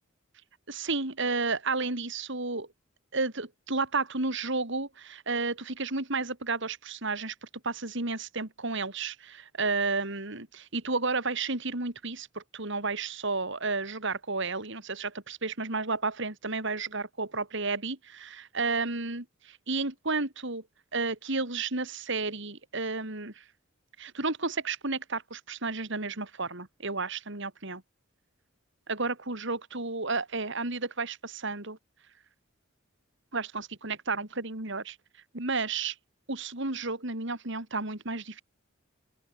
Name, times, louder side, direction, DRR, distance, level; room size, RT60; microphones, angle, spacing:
voice 1, 0.7-2.7 3.1-20.6 20.9-23.4 24.0-27.8 28.9-31.8 33.3-35.0 35.3-36.0 36.3-38.4, right 3 dB, 60° right, 3.5 m, -32 dB
open air
head